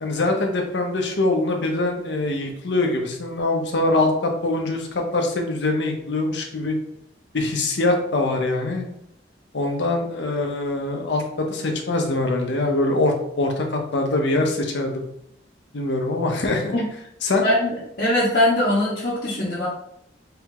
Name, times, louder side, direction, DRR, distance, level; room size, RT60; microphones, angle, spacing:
voice 1, 0.0-6.8 7.3-8.9 9.5-15.0 15.7-16.7 17.2-17.4, left 2 dB, 70° left, 2 dB, 0.7 m, -23 dB
voice 2, 17.4-19.7, left 1 dB, 50° left, -9 dB, 1.0 m, -21 dB
3.3 x 3.0 x 3.7 m, 0.76 s
head